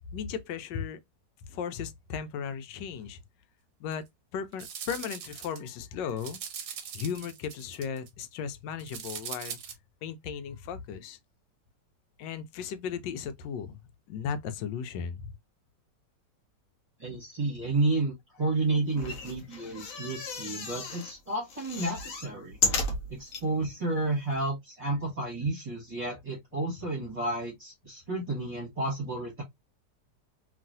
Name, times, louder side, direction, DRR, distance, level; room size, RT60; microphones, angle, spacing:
voice 1, 0.1-1.0 1.5-3.2 3.8-4.1 4.3-6.4 6.9-9.6 10.0-11.2 12.2-13.8 14.1-15.3, left 7 dB, 85° left, 1.2 m, -36 dB
sound 1, 3.9-4.0 4.5-5.7 6.1-8.2 8.8-9.7, right 7 dB, 65° right, 0.9 m, -41 dB
voice 2, 17.0-22.6 23.1-29.4, right 2 dB, 25° right, 0.9 m, -31 dB
sound 2, 18.9-21.1 21.5-23.4 24.0-24.1 24.3-24.4, left 3 dB, 60° left, 1.0 m, -33 dB
3.0 x 2.6 x 2.5 m
omnidirectional pair, 1.9 m